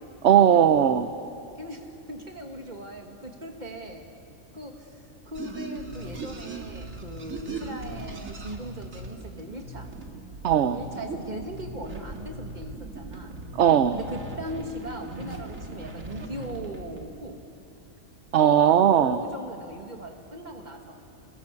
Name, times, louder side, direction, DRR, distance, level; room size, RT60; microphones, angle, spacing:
voice 1, 0.2-1.1 10.4-10.8 13.6-14.0 18.3-19.2, right 9 dB, 60° right, 9 dB, 1.0 m, -18 dB
voice 2, 1.6-4.0 4.5-9.9 10.7-13.4 13.9-17.4 19.0-21.0, right 1 dB, 35° right, 2 dB, 2.5 m, -39 dB
sound 1, 5.3-17.0, right 3 dB, 80° right, 2.7 m, -39 dB
27.0 x 21.0 x 8.5 m, 2.5 s
omnidirectional pair, 1.4 m